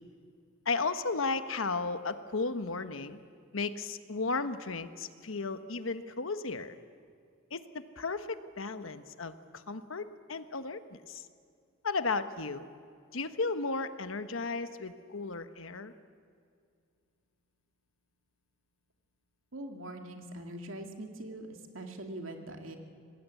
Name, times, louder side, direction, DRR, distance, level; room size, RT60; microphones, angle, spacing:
voice 1, 0.6-3.2 3.5-6.8 7.5-11.3 11.8-12.7 13.1-15.9, left 3 dB, 85° left, 10 dB, 1.2 m, -34 dB
voice 2, 19.5-21.5 21.7-22.8, right 1 dB, 80° right, 4 dB, 2.4 m, -42 dB
26.0 x 19.5 x 8.4 m, 2.3 s
head